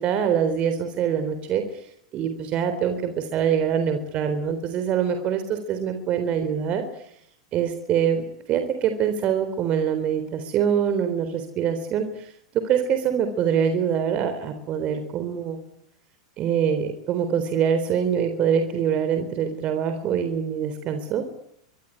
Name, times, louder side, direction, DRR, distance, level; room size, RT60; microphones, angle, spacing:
voice 1, 0.0-7.1 7.5-15.6 16.4-21.3, right 8 dB, 40° right, 8 dB, 3.8 m, -24 dB
25.5 x 23.0 x 9.9 m, 0.73 s
hypercardioid pair, 100°, 3 cm